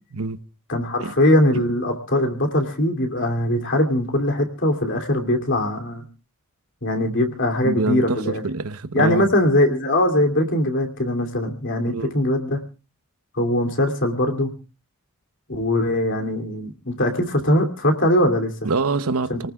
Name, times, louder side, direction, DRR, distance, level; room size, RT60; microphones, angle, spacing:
voice 1, 0.7-6.0 6.8-8.4 8.9-12.6 13.3-14.5 15.5-18.7 19.3-19.5, left 1 dB, 55° left, 2.8 m, -21 dB
voice 2, 7.6-9.3 11.8-12.1 18.6-19.5, right 3 dB, 75° right, 0.9 m, -25 dB
28.0 x 19.0 x 2.3 m
head